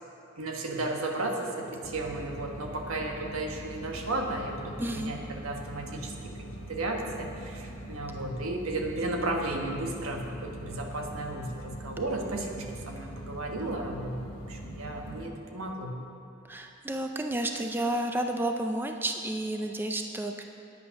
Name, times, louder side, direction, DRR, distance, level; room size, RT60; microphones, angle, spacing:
voice 1, 0.4-6.1 6.7-14.1 14.5-15.9, right 2 dB, 80° right, 2 dB, 1.3 m, -34 dB
sound 1, 1.8-15.3, right 1 dB, 80° left, 1.3 m, -42 dB
voice 2, 4.8-5.1 16.5-20.4, right 1 dB, 10° right, 4 dB, 0.4 m, -31 dB
9.3 x 8.7 x 5.8 m, 2.9 s
head